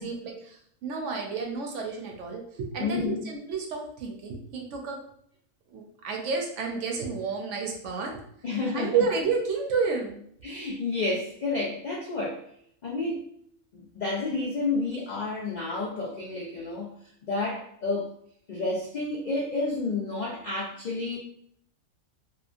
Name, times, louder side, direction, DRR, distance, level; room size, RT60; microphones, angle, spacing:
voice 1, 0.0-5.0 5.7-8.2 8.7-10.3, right 5 dB, 70° right, 1 dB, 0.9 m, -30 dB
voice 2, 2.8-3.2 8.4-9.0 10.4-12.4 12.8-13.2 13.7-16.9 17.2-18.1 18.5-21.2, left 3 dB, 80° left, -3 dB, 0.4 m, -30 dB
2.9 x 2.2 x 2.4 m, 0.66 s
omnidirectional pair, 1.4 m